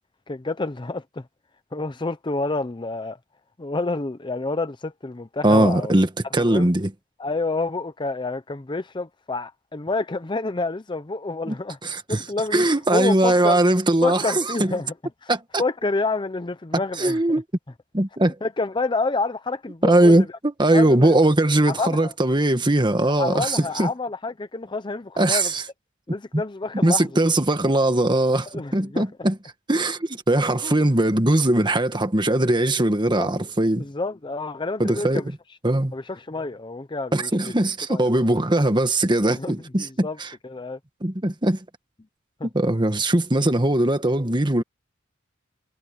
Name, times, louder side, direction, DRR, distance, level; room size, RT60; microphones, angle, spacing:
voice 1, 0.3-1.3 1.7-3.2 3.6-5.9 6.4-6.7 7.2-12.6 12.9-13.6 14.0-14.9 15.2-15.3 15.6-17.2 18.4-20.3 20.7-21.2 21.7-22.1 23.2-25.5 26.1-27.1 28.5-29.0 30.6-30.8 33.2-33.4 33.8-35.2 35.9-37.5 37.9-38.4 39.4-40.2 40.4-40.8 42.4-42.5, left 3 dB, 25° left, 0.6 m, -28 dB
voice 2, 5.4-6.9 11.5-11.6 11.8-12.2 12.5-14.7 15.3-15.6 17.0-17.4 17.9-18.3 19.8-23.9 25.2-25.6 26.3-26.4 26.8-29.4 29.7-33.8 34.8-35.2 35.6-35.9 37.1-40.3 41.0-41.6 42.5-44.6, right 1 dB, 25° right, 1.5 m, -20 dB
head